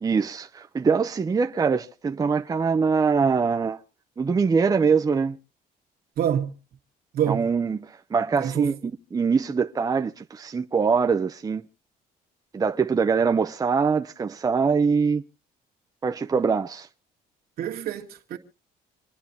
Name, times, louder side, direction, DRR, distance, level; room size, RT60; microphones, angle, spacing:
voice 1, 0.0-3.8 4.2-5.4 7.3-11.7 12.5-15.2 16.0-16.9, right 5 dB, 20° right, 0.6 m, -23 dB
voice 2, 6.2-6.5 7.1-7.5 8.4-8.7 17.6-18.4, right 9 dB, 65° right, 1.8 m, -26 dB
27.0 x 10.0 x 2.7 m
cardioid pair, 110°, 17 cm